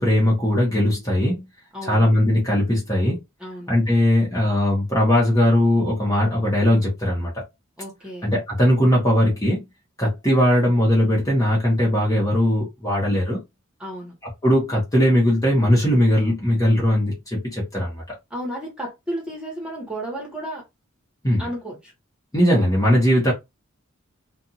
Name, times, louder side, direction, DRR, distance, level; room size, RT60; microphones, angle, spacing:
voice 1, 0.0-1.4 1.8-3.2 3.7-7.4 8.2-9.6 10.0-13.4 14.4-18.0 21.2-21.5 22.3-23.3, left 1 dB, 15° left, 1.1 m, -19 dB
voice 2, 1.7-2.1 3.4-3.7 7.8-8.3 13.8-14.1 18.3-20.6 21.4-21.9, right 1 dB, 5° right, 1.3 m, -32 dB
2.5 x 2.5 x 2.8 m
head